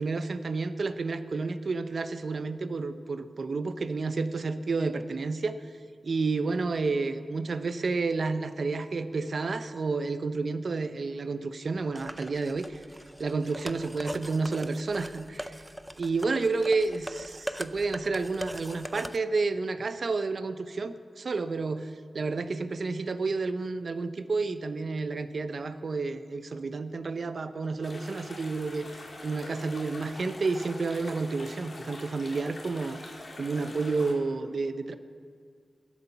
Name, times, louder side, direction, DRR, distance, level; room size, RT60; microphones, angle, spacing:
voice 1, 0.0-5.6 6.0-12.8 13.2-15.6 16.0-33.0 33.4-34.9, right 3 dB, 55° right, 11 dB, 0.7 m, -30 dB
sound 1, 12.0-19.2, equal, 5° right, 0.5 m, -40 dB
sound 2, 27.8-34.1, left 2 dB, 45° left, 2.5 m, -44 dB
21.0 x 8.3 x 5.6 m, 2.1 s
wide cardioid pair, 125°, 0 cm